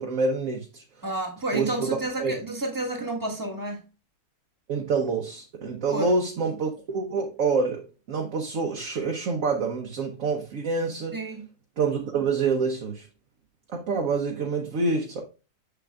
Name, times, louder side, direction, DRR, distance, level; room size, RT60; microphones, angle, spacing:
voice 1, 0.0-0.8 1.5-2.3 4.7-7.8 8.1-11.1 11.8-13.1 13.7-15.2, right 4 dB, 60° right, 1.3 m, -27 dB
voice 2, 1.0-3.8 5.9-6.1 11.1-11.5, right 2 dB, 15° right, 1.5 m, -30 dB
6.8 x 6.7 x 2.4 m
omnidirectional pair, 1.7 m